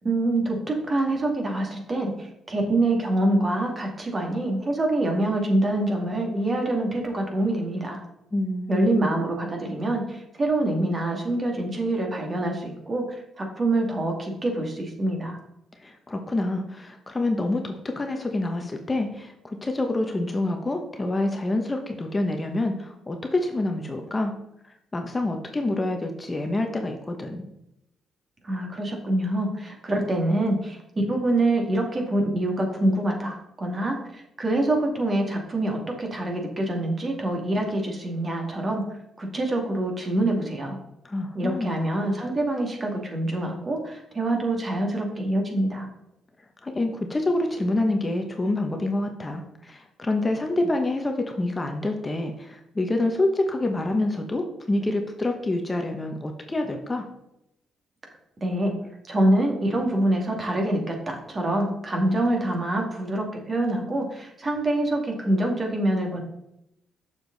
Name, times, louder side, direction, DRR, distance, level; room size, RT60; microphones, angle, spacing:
voice 1, 0.0-8.0 8.7-15.4 28.4-38.8 39.2-40.8 41.3-45.9 58.4-58.7 59.1-66.2, right 1 dB, 35° right, 2 dB, 2.4 m, -25 dB
voice 2, 8.3-9.2 15.8-24.3 24.6-27.5 41.0-41.7 46.6-57.1, left 2 dB, 20° left, 4 dB, 1.0 m, -27 dB
7.1 x 6.8 x 4.0 m, 0.82 s
cardioid pair, 90°, 0 cm